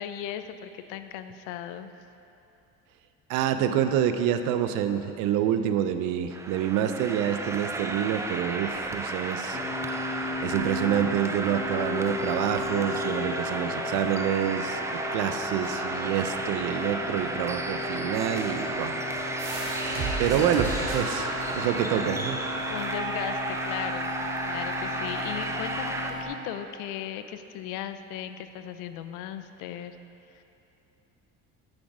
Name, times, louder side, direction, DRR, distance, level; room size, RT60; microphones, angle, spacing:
voice 1, 0.0-1.9 20.3-20.9 22.7-24.1 24.5-30.0 30.3-30.4, left 10 dB, 80° left, 10 dB, 0.6 m, -37 dB
voice 2, 3.3-9.6 10.4-19.0 20.2-22.4, right 10 dB, 75° right, 9 dB, 0.6 m, -27 dB
sound 1, 6.3-26.1, right 2 dB, 10° right, 0.4 m, -33 dB
sound 2, 9.5-26.2, left 3 dB, 35° left, 1.1 m, -35 dB
sound 3, 19.4-24.8, right 2 dB, 50° right, 2.0 m, -36 dB
9.6 x 6.3 x 4.9 m, 2.8 s
cardioid pair, 110°, 31 cm